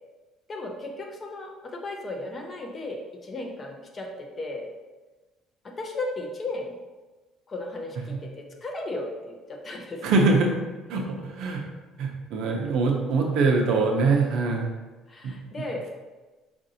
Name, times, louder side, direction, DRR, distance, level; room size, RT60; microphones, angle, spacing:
voice 1, 0.5-4.7 5.6-6.8 7.5-10.1 15.1-15.9, left 2 dB, 25° left, 1 dB, 0.5 m, -35 dB
voice 2, 10.0-10.5 10.9-11.6 12.0-14.7 15.2-15.3, right 3 dB, 65° right, 1 dB, 0.6 m, -23 dB
5.0 x 2.6 x 2.7 m, 1.2 s
cardioid pair, 145°, 0 cm